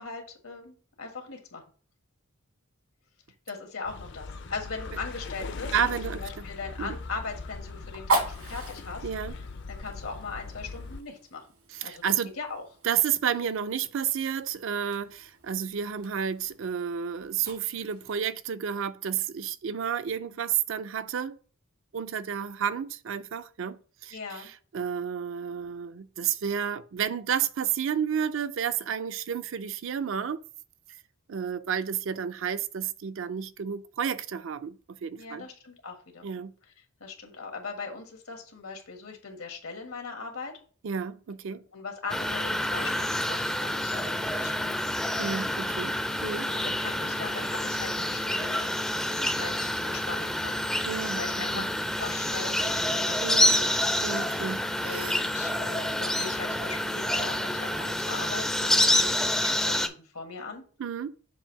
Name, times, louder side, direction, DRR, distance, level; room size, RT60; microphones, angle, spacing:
voice 1, 0.0-1.6 3.5-9.1 9.7-11.4 11.8-12.1 12.4-12.6 24.1-24.5 35.2-36.4 37.0-40.5 41.7-44.9 46.4-48.7 49.1-50.6 51.2-53.8 54.8-60.6, left 4 dB, 85° left, 1.6 m, -39 dB
sound 1, 3.8-11.0, left 4 dB, 55° left, 0.5 m, -40 dB
Fire, 5.0-18.2, right 2 dB, 85° right, 2.2 m, -38 dB
voice 2, 5.7-6.5 6.8-6.9 9.0-9.3 11.7-12.3 12.8-21.4 21.9-30.4 31.3-35.5 36.2-36.5 40.8-41.6 45.2-45.9 46.2-46.5 50.9-51.7 53.2-53.6 54.0-55.2 60.8-61.1, right 8 dB, 60° right, 0.4 m, -31 dB
sound 2, 42.1-59.9, left 1 dB, 5° left, 0.4 m, -28 dB
7.2 x 2.7 x 5.7 m
head